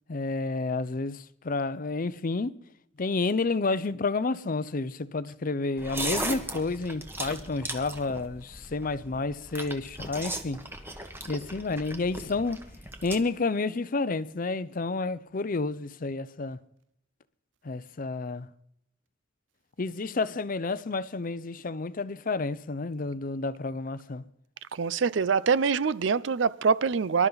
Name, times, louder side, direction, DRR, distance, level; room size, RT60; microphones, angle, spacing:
voice 1, 0.1-2.6 3.0-10.6 11.3-12.6 13.0-16.6 17.6-18.5 19.8-24.2, left 3 dB, 45° left, 0.6 m, -30 dB
sound 1, 5.8-13.2, right 1 dB, 10° right, 1.4 m, -37 dB
voice 2, 24.7-27.3, right 5 dB, 65° right, 0.5 m, -24 dB
24.5 x 12.0 x 4.0 m
head